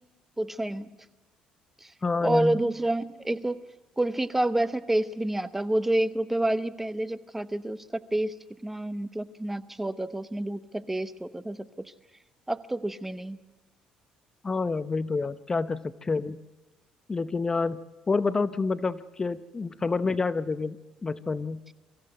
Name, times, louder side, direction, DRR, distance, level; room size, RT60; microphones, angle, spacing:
voice 1, 0.4-0.9 1.8-1.9 2.2-3.6 4.0-8.3 8.6-11.9 12.5-13.4, right 1 dB, 10° right, 13 dB, 0.9 m, -28 dB
voice 2, 2.0-2.6 14.4-16.4 17.1-17.8 18.1-21.6, left 4 dB, 25° left, 13 dB, 0.7 m, -28 dB
24.0 x 15.0 x 7.9 m, 1.1 s
supercardioid pair, 90°, 2 cm